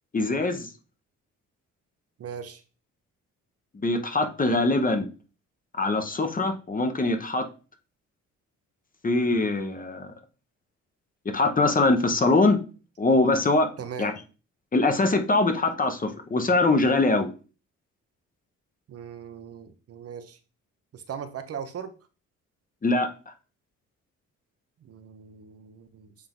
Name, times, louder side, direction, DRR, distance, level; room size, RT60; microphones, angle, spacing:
voice 1, 0.1-0.7 3.8-5.1 5.7-7.5 9.0-10.1 11.2-12.6 13.0-13.7 14.0-14.1 14.7-17.3 22.8-23.1, left 2 dB, 30° left, 6 dB, 1.1 m, -23 dB
voice 2, 2.2-2.6 13.8-14.1 18.9-20.4 20.9-21.9 24.8-26.1, right 7 dB, 50° right, 9 dB, 0.9 m, -39 dB
7.8 x 3.6 x 3.7 m, 0.35 s
cardioid pair, 90°, 30 cm